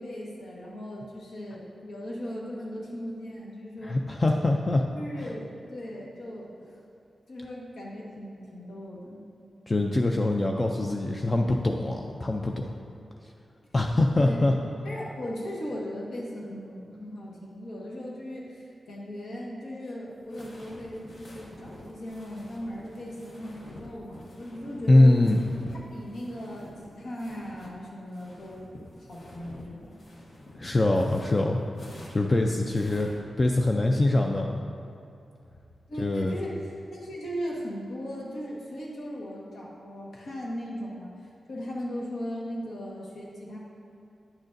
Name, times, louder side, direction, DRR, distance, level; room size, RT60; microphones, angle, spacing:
voice 1, 0.0-4.0 4.9-6.7 7.3-9.2 14.1-25.2 25.9-28.7 29.0-30.0 35.9-41.1 41.5-43.6, equal, 75° left, -4 dB, 1.4 m, -38 dB
voice 2, 3.8-4.8 9.7-12.7 13.7-14.5 24.9-25.4 30.6-31.6 32.1-33.1 33.4-34.6 36.0-36.3, left 2 dB, 30° left, 2 dB, 0.4 m, -23 dB
sound 1, 20.1-27.7 28.0-33.2, left 1 dB, 55° left, 1.0 m, -48 dB
9.5 x 6.4 x 2.6 m, 2.6 s
wide cardioid pair, 110°, 0 cm